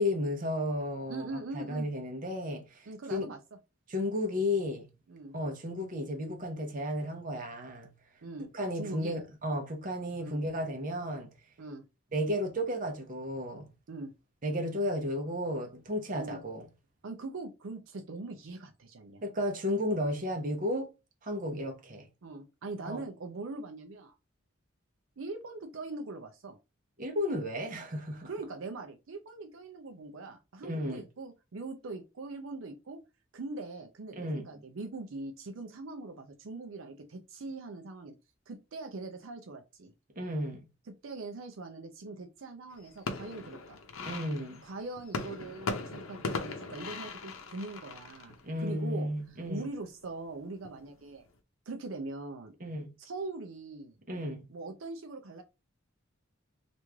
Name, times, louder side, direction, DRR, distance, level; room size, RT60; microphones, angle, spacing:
voice 1, 0.0-3.3 3.9-4.9 5.3-7.9 8.5-11.3 12.1-13.7 14.4-16.7 19.2-20.9 21.2-22.1 22.8-23.1 27.0-28.5 30.6-31.0 34.1-34.6 40.2-40.7 44.0-44.6 48.4-49.7 52.6-52.9 54.1-54.5, left 1 dB, 40° right, 0.8 m, -33 dB
voice 2, 1.1-1.9 2.9-3.4 5.1-5.3 8.2-9.2 10.2-10.4 11.6-11.8 13.9-14.1 16.1-16.4 17.0-19.2 22.2-24.1 25.2-26.6 28.3-33.0 33.3-38.1 38.5-39.9 41.0-43.8 44.6-49.1 49.5-51.2 51.7-52.5 53.0-54.0 54.5-55.4, right 3 dB, 75° right, 0.5 m, -42 dB
sound 1, 42.7-49.3 49.7-50.3 50.6-51.3, left 3 dB, 85° left, 0.7 m, -40 dB
3.1 x 2.5 x 3.4 m
head